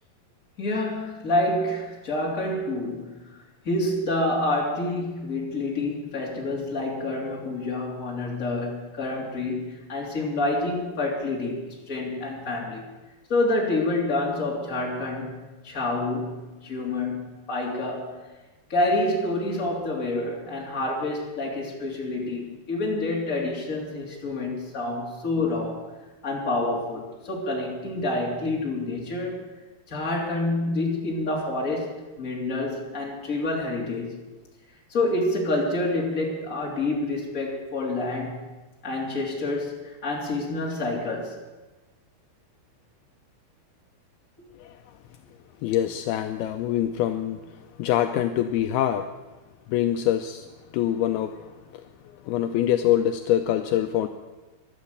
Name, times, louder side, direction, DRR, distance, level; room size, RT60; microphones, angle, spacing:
voice 1, 0.6-3.4 3.6-12.8 13.3-18.1 18.7-25.8 26.2-29.4 29.9-34.2 34.9-38.4 38.8-41.3, left 2 dB, 20° left, -2 dB, 3.1 m, -28 dB
voice 2, 45.6-49.1 49.7-50.5 50.7-54.1, left 11 dB, 80° left, 7 dB, 2.4 m, -25 dB
16.0 x 11.5 x 6.6 m, 1.2 s
omnidirectional pair, 4.6 m